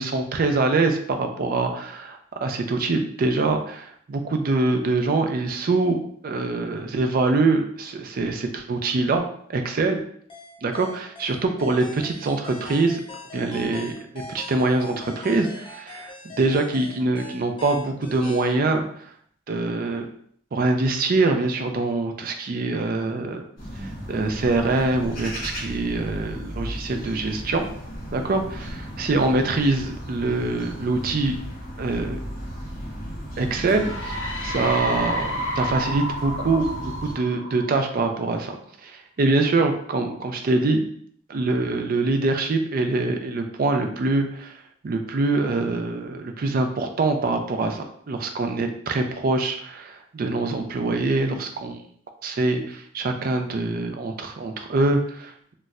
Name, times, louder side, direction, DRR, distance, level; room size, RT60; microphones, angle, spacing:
voice 1, 0.0-6.0 6.2-9.2 9.5-10.0 10.6-13.0 13.3-13.9 14.3-18.9 19.5-20.0 20.5-23.4 23.8-27.7 28.1-31.4 31.8-32.2 33.4-34.2 34.4-36.7 37.0-38.5 38.8-40.9 41.3-44.5 44.8-51.8 52.2-55.5, right 3 dB, 50° right, 5 dB, 0.4 m, -24 dB
sound 1, 10.3-18.6, left 2 dB, 25° left, 0.5 m, -41 dB
sound 2, 23.6-37.1, equal, 50° left, 1.0 m, -35 dB
sound 3, 33.7-38.2, equal, 75° left, 0.7 m, -30 dB
4.1 x 2.1 x 2.4 m, 0.63 s
head